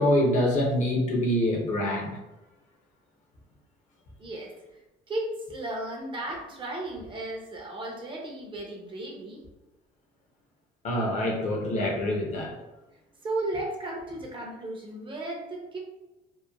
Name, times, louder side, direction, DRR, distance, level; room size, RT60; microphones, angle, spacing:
voice 1, 0.0-2.2 10.8-12.5, left 1 dB, 45° left, 0 dB, 0.6 m, -25 dB
voice 2, 4.2-4.5 5.1-9.4 13.2-15.8, right 1 dB, 30° right, -1 dB, 0.6 m, -35 dB
2.9 x 2.0 x 2.3 m, 1.0 s
cardioid pair, 110°, 17 cm